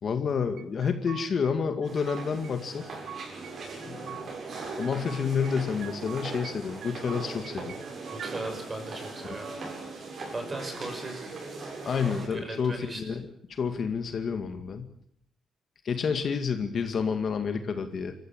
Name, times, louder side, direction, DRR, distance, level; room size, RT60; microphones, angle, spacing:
voice 1, 0.0-2.8 3.8-4.3 4.8-7.8 9.2-9.4 11.9-13.2 13.6-14.9 15.8-18.2, left 6 dB, 45° left, 7 dB, 2.1 m, -29 dB
sound 1, 0.6-1.5 1.8-2.5 2.8-4.3 4.6-5.6 5.8-6.6 6.8-8.3, right 9 dB, 70° right, 1.5 m, -45 dB
sound 2, 1.8-12.3, right 3 dB, 45° right, 7.8 m, -39 dB
voice 2, 8.1-9.5 10.3-11.3 12.0-13.0, right 2 dB, 25° right, 6 dB, 6.2 m, -38 dB
26.5 x 14.5 x 8.8 m, 0.69 s
cardioid pair, 140°, 0 cm